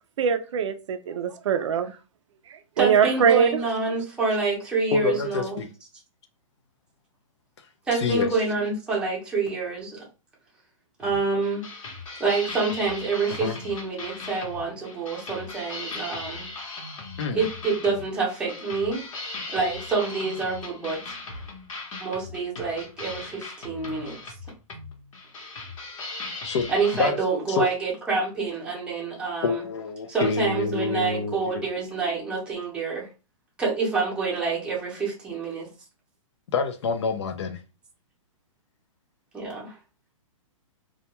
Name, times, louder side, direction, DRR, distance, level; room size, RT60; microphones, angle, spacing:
voice 1, 0.2-2.0 2.5-3.6, right 7 dB, 60° right, 0.4 m, -23 dB
voice 2, 2.8-5.6 7.9-10.0 11.0-11.6 12.2-16.5 17.3-19.1 19.5-21.0 22.0-24.2 26.7-29.6 30.1-33.1 33.6-35.7 39.3-39.8, right 4 dB, 5° right, 0.7 m, -27 dB
voice 3, 4.9-5.7 7.9-8.3 13.4-13.6 17.2-17.4 26.4-27.2 27.5-27.7 29.4-31.7 36.5-37.6, left 5 dB, 55° left, 0.5 m, -27 dB
sound 1, 11.0-27.1, left 3 dB, 70° left, 0.9 m, -38 dB
2.2 x 2.2 x 2.9 m
hypercardioid pair, 160°, 17 cm